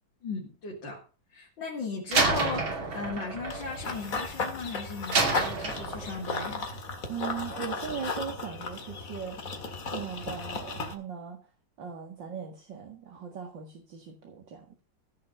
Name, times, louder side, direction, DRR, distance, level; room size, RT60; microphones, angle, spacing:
voice 1, 0.2-1.0 1.3-6.7, left 4 dB, 75° left, -3 dB, 3.4 m, -37 dB
Slam, 2.1-4.5 5.1-6.3, right 3 dB, 85° right, 3.6 m, -29 dB
Run / Bird vocalization bird call bird song, 3.5-10.9, left 3 dB, 45° left, 2.2 m, -35 dB
voice 2, 7.1-9.4 9.9-11.4 11.8-14.7, right 7 dB, 65° right, 2 dB, 2.5 m, -39 dB
15.5 x 5.7 x 6.6 m, 0.35 s
omnidirectional pair, 2.1 m